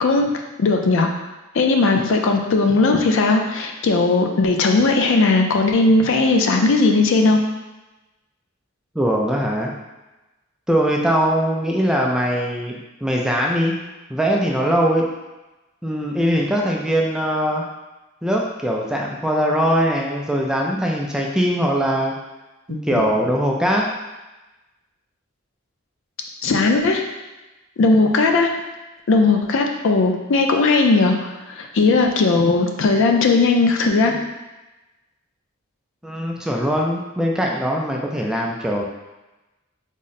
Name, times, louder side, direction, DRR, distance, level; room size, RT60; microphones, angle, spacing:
voice 1, 0.6-1.1 1.5-7.4 22.7-22.8 26.4-27.0 27.8-28.5 29.1-34.2, left 3 dB, 65° left, 3 dB, 0.4 m, -17 dB
voice 2, 8.9-9.7 10.7-13.7 14.1-15.1 15.8-17.6 18.2-22.1 22.9-23.9 36.0-38.8, equal, 5° right, -2 dB, 0.3 m, -21 dB
3.7 x 2.0 x 4.0 m, 1.1 s
head